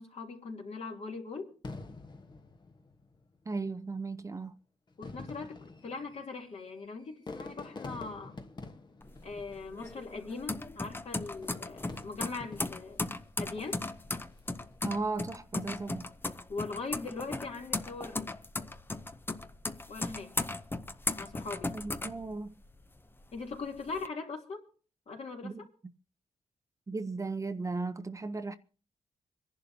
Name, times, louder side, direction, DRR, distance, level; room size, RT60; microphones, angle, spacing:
voice 1, 0.0-1.5 5.0-8.4 9.2-13.0 13.4-13.8 16.5-18.3 19.9-20.4 21.2-21.7 23.3-24.6 25.1-25.6, left 4 dB, 55° left, 3.0 m, -40 dB
Fireworks, 1.6-3.3 4.1-4.2 4.9-10.2 11.2-13.0 13.6-14.0, left 3 dB, 35° left, 1.2 m, -47 dB
voice 2, 3.5-4.5 14.8-16.0 21.7-22.6 25.4-25.5 26.9-28.6, right 3 dB, 25° right, 0.7 m, -36 dB
sound 1, 9.0-22.8 23.2-24.1, left 2 dB, 15° left, 0.7 m, -37 dB
26.5 x 11.0 x 2.8 m
cardioid pair, 105°, 13 cm